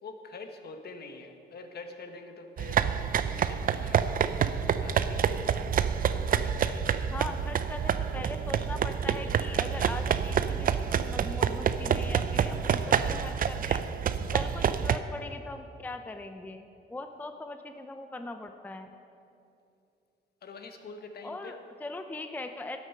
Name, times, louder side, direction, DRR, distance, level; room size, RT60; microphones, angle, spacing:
voice 1, 0.0-4.1 4.8-5.4 6.1-7.1 20.4-21.6, left 3 dB, 55° left, 6 dB, 1.2 m, -45 dB
sound 1, 2.6-15.0, right 8 dB, 45° right, 0.5 m, -28 dB
voice 2, 7.1-10.7 11.0-13.8 14.3-18.9 21.2-22.8, left 2 dB, 10° left, 7 dB, 0.5 m, -40 dB
13.0 x 8.0 x 5.6 m, 2.7 s
cardioid pair, 90°, 20 cm